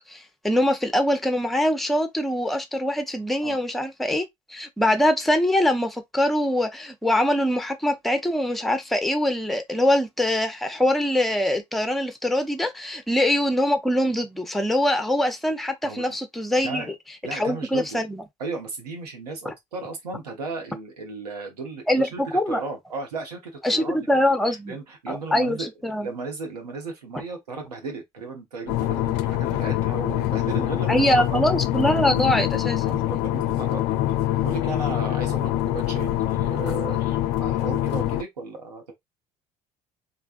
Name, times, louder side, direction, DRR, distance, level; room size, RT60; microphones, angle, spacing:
voice 1, 0.1-16.9 17.3-18.2 19.5-19.6 21.9-22.6 23.6-24.8 25.1-26.1 30.9-32.9, left 1 dB, ahead, 0.7 m, -23 dB
voice 2, 15.8-16.2 16.6-16.9 17.2-18.0 18.4-22.2 22.5-23.4 23.7-24.0 24.5-25.7 26.0-31.4 32.8-33.8 34.4-38.9, right 3 dB, 80° right, 1.1 m, -35 dB
sound 1, 28.7-38.2, left 14 dB, 55° left, 0.4 m, -25 dB
3.4 x 2.4 x 2.5 m
figure-of-eight pair, 60°, 20 cm